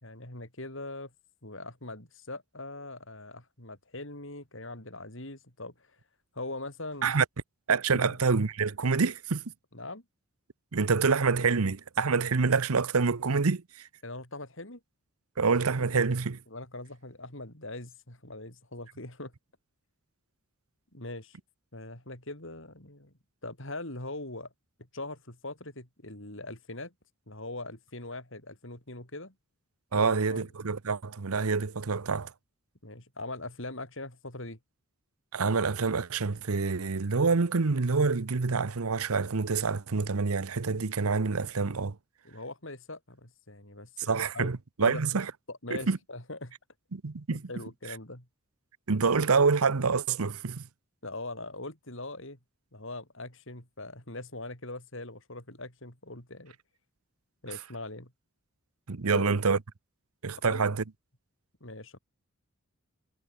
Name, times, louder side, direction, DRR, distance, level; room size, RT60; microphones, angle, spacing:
voice 1, 0.0-1.1 1.4-5.9 6.3-7.1 7.9-8.2 9.7-10.0 14.0-14.8 16.5-19.3 20.9-21.4 21.7-23.1 23.4-24.5 24.9-26.9 27.3-29.3 29.9-30.5 32.8-34.6 42.2-44.5 44.8-45.0 45.5-46.5 47.3-48.3 51.0-52.4 52.7-56.6 57.4-58.1 59.1-59.3 60.4-60.7 61.6-62.0, left 2 dB, 60° left, 5.7 m, -41 dB
voice 2, 7.7-9.4 10.7-13.9 15.4-16.4 29.9-32.3 35.3-41.9 44.1-45.3 45.7-46.0 46.9-47.4 48.9-50.6 58.9-59.6 60.2-60.8, right 4 dB, 90° right, 0.9 m, -27 dB
head